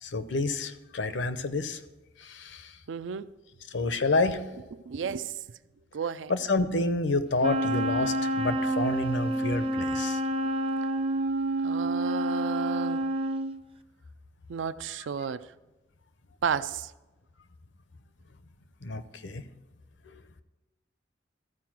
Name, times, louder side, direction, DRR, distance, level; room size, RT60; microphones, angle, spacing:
voice 1, 0.0-1.8 2.2-2.8 3.7-4.4 6.3-10.2 18.8-19.4 20.1-20.2, left 2 dB, 75° left, 0.7 m, -29 dB
voice 2, 2.9-3.3 4.9-5.3 5.9-6.3 11.6-13.0 14.5-15.4 16.4-16.9, right 6 dB, 85° right, 0.4 m, -32 dB
Wind instrument woodwind instrument, 7.4-13.5, right 1 dB, 30° right, 0.5 m, -28 dB
14.0 x 4.7 x 6.0 m
head